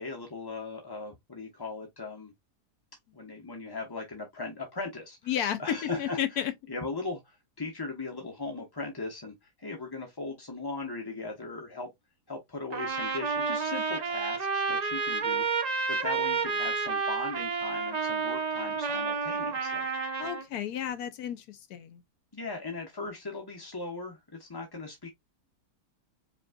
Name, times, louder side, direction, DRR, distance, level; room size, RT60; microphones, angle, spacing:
voice 1, 0.0-2.3 3.1-5.3 5.6-11.9 12.3-15.5 15.9-19.9 22.3-25.1, left 3 dB, 20° left, 0.6 m, -38 dB
voice 2, 5.3-6.5 20.2-22.0, left 10 dB, 75° left, 1.1 m, -32 dB
Trumpet, 12.7-20.4, right 5 dB, 85° right, 0.3 m, -30 dB
5.2 x 2.9 x 2.2 m
omnidirectional pair, 1.7 m